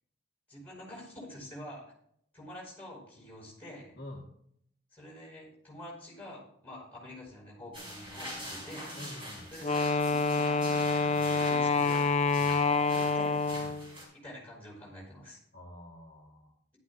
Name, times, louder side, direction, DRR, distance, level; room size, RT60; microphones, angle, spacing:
voice 1, 0.5-1.9 2.3-4.0 4.9-9.0 9.5-12.2 12.5-13.4 14.1-15.4, left 1 dB, 10° left, -4 dB, 5.0 m, -47 dB
voice 2, 4.0-4.3 8.9-9.5 13.5-13.8 15.5-16.5, left 1 dB, 50° left, -1 dB, 1.4 m, -47 dB
sound 1, 7.7-14.0, equal, 25° right, 4.4 m, -44 dB
Wind instrument woodwind instrument, 9.6-13.9, left 3 dB, 35° left, 0.4 m, -27 dB
13.5 x 11.5 x 2.5 m, 0.69 s
head